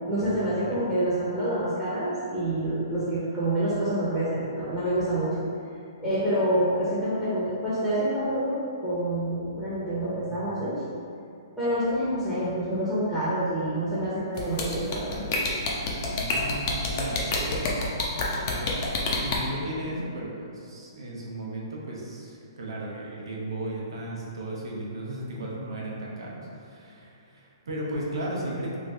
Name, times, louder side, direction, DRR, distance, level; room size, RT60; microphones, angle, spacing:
voice 1, 0.1-5.3 6.0-8.5 8.8-10.7 11.6-15.2, right 1 dB, 5° right, -13 dB, 0.8 m, -27 dB
sound 1, 14.4-19.4, left 3 dB, 40° left, 0.5 m, -27 dB
voice 2, 16.1-17.8 18.4-18.8 19.2-28.8, right 1 dB, 80° right, -3 dB, 0.8 m, -35 dB
3.2 x 2.5 x 3.2 m, 2.4 s
hypercardioid pair, 150°, 2 cm